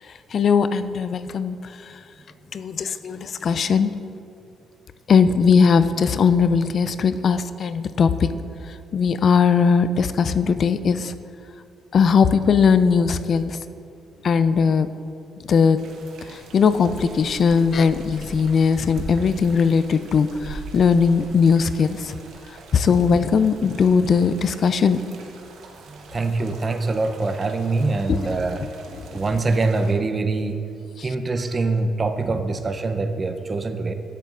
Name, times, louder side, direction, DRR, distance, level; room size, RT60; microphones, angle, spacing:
voice 1, 0.3-1.6 2.5-3.9 5.1-8.3 8.9-11.1 11.9-13.6 14.2-14.9 15.5-15.8 16.3-22.1 22.7-25.0 28.1-29.0 31.0-31.1, left 6 dB, 55° left, 12 dB, 0.3 m, -19 dB
sound 1, 15.8-29.9, right 3 dB, 75° right, 0.9 m, -42 dB
voice 2, 26.1-28.6 29.1-30.6 31.0-33.9, right 3 dB, 30° right, 8 dB, 0.6 m, -24 dB
13.5 x 6.8 x 2.4 m, 2.4 s
cardioid pair, 90°, 0 cm